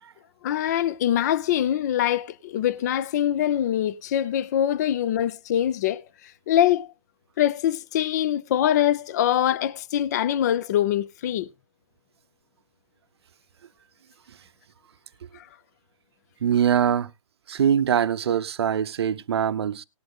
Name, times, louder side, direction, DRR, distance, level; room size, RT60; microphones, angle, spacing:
voice 1, 0.4-6.0 6.5-6.9 7.4-11.5 15.3-15.5, left 11 dB, 30° left, 0.5 m, -23 dB
voice 2, 16.4-17.1 17.5-19.8, right 8 dB, 50° right, 0.7 m, -23 dB
19.0 x 7.7 x 2.3 m
figure-of-eight pair, 140°, 17 cm